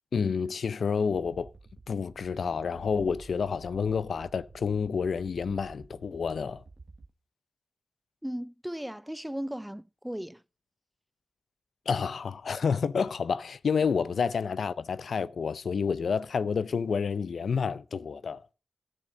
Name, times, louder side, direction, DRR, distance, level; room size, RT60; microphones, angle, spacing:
voice 1, 0.1-1.5 1.9-6.6 11.9-18.4, left 6 dB, 75° left, 0.5 m, -29 dB
sound 1, 1.1-7.1, right 3 dB, 50° right, 1.0 m, -51 dB
voice 2, 8.2-10.4, equal, 5° right, 0.4 m, -36 dB
14.0 x 6.5 x 3.7 m
cardioid pair, 40°, 0 cm